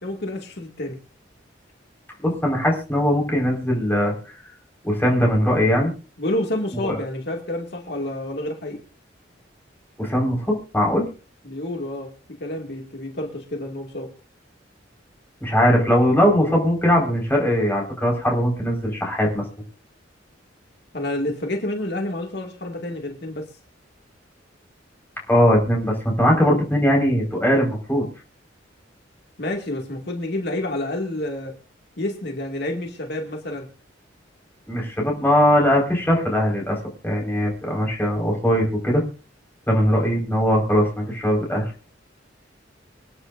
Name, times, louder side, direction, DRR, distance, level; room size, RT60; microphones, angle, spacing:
voice 1, 0.0-1.0 6.2-8.8 11.4-12.1 12.4-14.1 20.9-23.5 29.4-31.5 32.0-33.7, left 1 dB, 60° left, 2 dB, 2.2 m, -29 dB
voice 2, 2.2-4.1 4.8-5.9 6.8-7.0 10.0-11.1 15.4-19.4 25.3-28.0 34.7-36.8 37.0-39.0 39.7-41.7, equal, 10° left, -1 dB, 4.8 m, -20 dB
26.0 x 9.8 x 2.6 m, 0.35 s
head